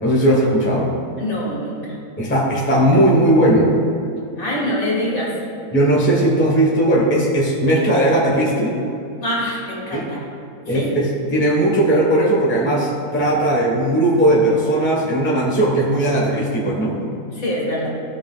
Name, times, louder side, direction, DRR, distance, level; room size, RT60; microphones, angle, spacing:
voice 1, 0.0-0.9 2.2-3.7 5.7-8.8 9.9-10.1 10.7-17.0, right 1 dB, 10° left, -4 dB, 1.1 m, -17 dB
voice 2, 1.2-2.0 2.6-2.8 4.4-5.3 9.2-10.2 10.7-10.9 17.3-17.9, equal, 60° left, -5 dB, 2.5 m, -25 dB
15.5 x 5.9 x 2.4 m, 2.6 s
omnidirectional pair, 1.7 m